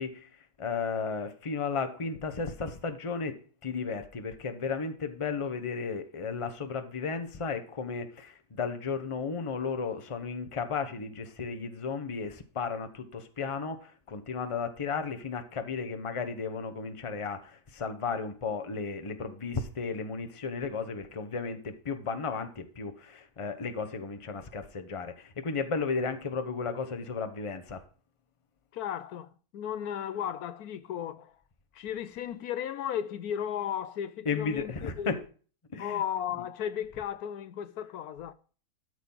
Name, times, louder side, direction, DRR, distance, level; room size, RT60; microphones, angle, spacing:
voice 1, 0.0-27.8 34.2-35.3 35.7-36.0 36.3-36.4, left 5 dB, 25° left, 0.9 m, -34 dB
voice 2, 28.7-31.3 31.7-35.2 35.8-38.3, left 9 dB, 75° left, 1.1 m, -35 dB
13.0 x 4.8 x 5.5 m
omnidirectional pair, 1.6 m